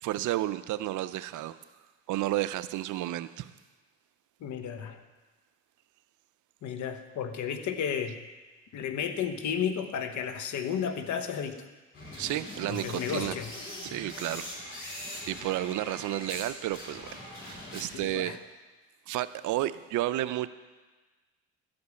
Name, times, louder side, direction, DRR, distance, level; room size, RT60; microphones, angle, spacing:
voice 1, 0.0-1.6 2.1-3.5 12.2-13.3 13.8-14.5 15.3-18.4 19.1-20.5, right 14 dB, 75° right, 15 dB, 0.5 m, -32 dB
voice 2, 4.4-5.0 6.6-8.2 8.7-11.7 12.7-13.5 17.9-18.4, left 7 dB, 70° left, 8 dB, 1.0 m, -33 dB
sound 1, 11.9-16.5 16.7-18.1, left 1 dB, 40° left, 3.8 m, -42 dB
12.5 x 5.3 x 8.2 m, 1.3 s
cardioid pair, 90°, 30 cm